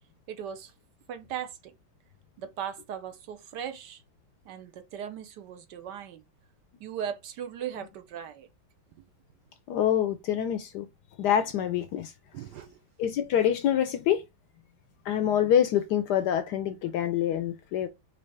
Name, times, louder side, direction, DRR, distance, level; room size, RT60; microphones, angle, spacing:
voice 1, 0.3-0.7 1.1-1.7 2.4-4.0 4.5-6.2 6.8-8.5 12.3-12.7, right 9 dB, 70° right, 1.1 m, -38 dB
voice 2, 9.7-10.9 11.2-12.1 13.0-14.2 15.0-17.9, left 10 dB, 70° left, 1.0 m, -26 dB
5.3 x 2.7 x 3.3 m
omnidirectional pair, 2.1 m